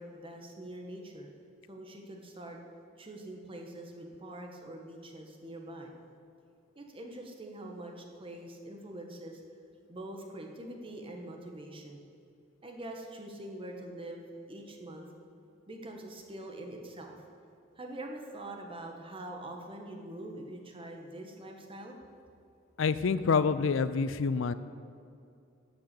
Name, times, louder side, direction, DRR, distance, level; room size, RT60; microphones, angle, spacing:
voice 1, 0.0-1.3 1.7-2.6 3.0-5.9 6.7-9.4 9.9-12.0 12.6-15.1 15.7-17.2 17.8-22.0, right 1 dB, 30° right, 2 dB, 1.3 m, -44 dB
voice 2, 22.8-24.5, left 5 dB, 75° left, 15 dB, 0.4 m, -27 dB
12.0 x 5.9 x 8.6 m, 2.5 s
head